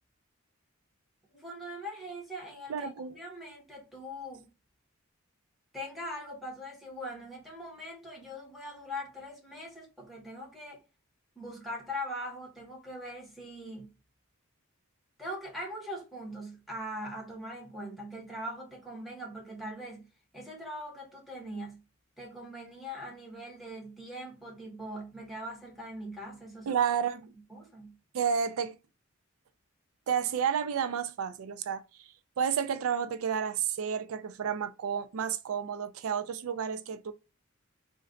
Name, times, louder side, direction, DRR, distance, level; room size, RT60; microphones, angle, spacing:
voice 1, 1.3-2.9 3.2-4.5 5.7-10.8 11.4-13.9 15.2-20.1 20.3-21.8 22.2-26.8 27.5-28.0, equal, ahead, 1.2 m, -41 dB
voice 2, 2.7-3.1 26.7-27.3 28.1-28.8 30.1-31.8 32.4-37.1, right 7 dB, 85° right, 0.4 m, -31 dB
3.2 x 2.6 x 3.7 m
head